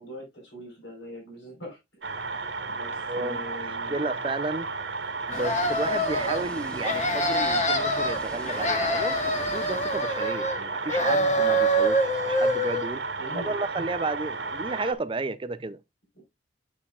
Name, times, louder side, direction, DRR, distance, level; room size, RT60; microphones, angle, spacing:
voice 1, 0.0-1.8 2.7-3.9 13.2-13.6, equal, 75° left, 4.3 m, -41 dB
sound 1, 2.0-14.9, right 4 dB, 70° right, 1.2 m, -33 dB
voice 2, 3.1-4.7 5.3-13.1 13.3-15.8, right 3 dB, 25° right, 0.4 m, -32 dB
sound 2, 5.3-6.4 6.8-8.2 8.5-10.6 10.9-12.9, equal, 35° left, 1.1 m, -25 dB
Water, 5.3-10.3, equal, 5° left, 1.4 m, -42 dB
8.6 x 7.0 x 2.4 m
head